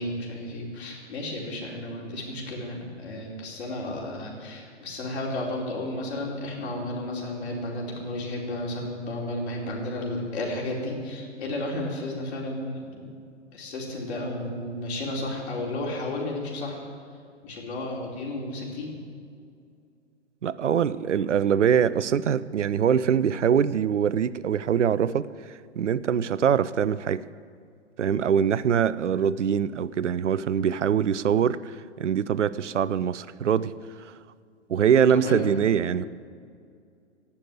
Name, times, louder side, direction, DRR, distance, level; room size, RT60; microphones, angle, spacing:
voice 1, 0.0-13.1 13.5-16.8 17.4-19.0 35.1-35.5, left 1 dB, 60° left, -2 dB, 4.7 m, -33 dB
voice 2, 20.4-27.2 28.0-33.7 34.0-34.1 34.7-36.0, right 8 dB, 75° right, 17 dB, 0.7 m, -23 dB
17.5 x 7.1 x 9.3 m, 2.3 s
figure-of-eight pair, 120°, 36 cm